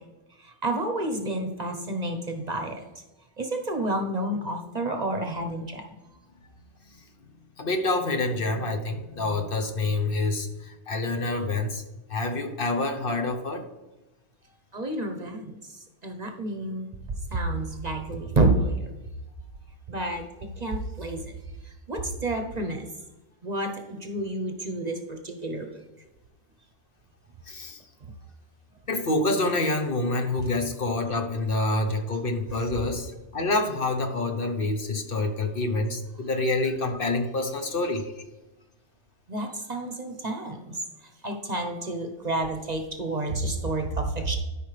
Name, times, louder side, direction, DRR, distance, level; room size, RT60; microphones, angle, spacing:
voice 1, 0.4-2.8 3.4-5.9 14.7-16.9 17.3-18.9 19.9-21.2 21.6-22.9 23.4-25.7 30.4-30.5 39.3-44.4, right 2 dB, 40° right, 5 dB, 0.9 m, -29 dB
voice 2, 7.6-11.8 12.1-13.6 27.5-27.8 28.9-38.1, left 2 dB, 55° left, 4 dB, 1.1 m, -27 dB
12.5 x 5.4 x 3.3 m, 1.0 s
omnidirectional pair, 1.2 m